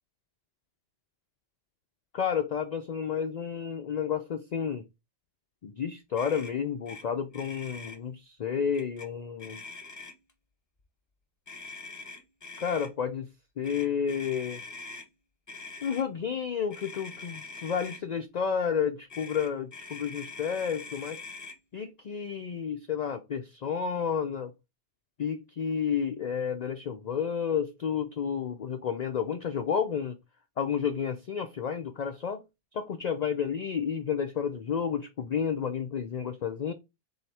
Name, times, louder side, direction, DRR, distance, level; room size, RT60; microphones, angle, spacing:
voice 1, 2.1-4.8 5.6-9.6 12.6-13.3 13.6-14.6 15.8-21.2 21.7-24.5 25.2-30.2 30.6-32.4 32.7-36.7, left 7 dB, 55° left, 0.5 m, -31 dB
Motor vehicle (road), 6.2-6.5 6.9-7.0 7.3-8.0 8.7-9.1 9.4-10.3 11.5-12.9 13.6-15.1 15.5-16.0 16.7-18.0 19.1-21.6, left 4 dB, 15° left, 0.8 m, -43 dB
4.4 x 3.6 x 3.3 m
omnidirectional pair, 1.2 m